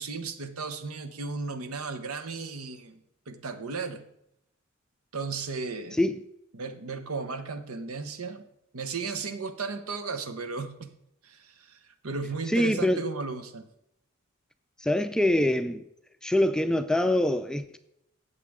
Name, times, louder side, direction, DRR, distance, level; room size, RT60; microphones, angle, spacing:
voice 1, 0.0-4.0 5.1-6.0 6.5-8.4 8.7-10.9 11.2-13.6, right 4 dB, 90° right, 0.9 m, -35 dB
voice 2, 12.5-13.0 14.8-15.8 16.2-17.8, left 1 dB, 5° left, 0.3 m, -24 dB
16.0 x 6.6 x 3.6 m
head